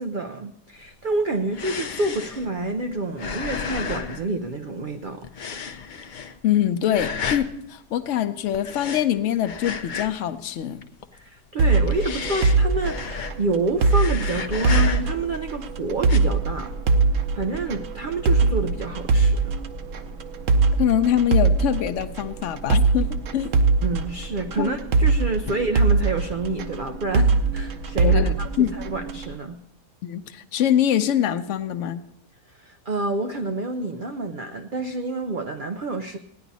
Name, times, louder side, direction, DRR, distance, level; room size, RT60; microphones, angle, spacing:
voice 1, 0.0-5.3 11.1-16.7 17.3-19.5 23.8-29.6 32.5-36.2, right 2 dB, 80° right, 5 dB, 0.4 m, -28 dB
sound 1, 0.9-4.9 5.2-6.5 6.9-7.5 8.5-10.3 10.6-11.2 11.7-13.6 13.8-15.3 16.0-16.2, left 6 dB, 80° left, 0.4 m, -32 dB
voice 2, 6.4-10.8 20.8-23.5 24.6-24.7 28.0-28.7 30.0-32.0, left 10 dB, 60° left, 10 dB, 0.9 m, -24 dB
sound 2, 11.6-29.3, right 4 dB, 60° right, 1.0 m, -22 dB
16.5 x 10.0 x 4.0 m, 0.77 s
omnidirectional pair, 1.7 m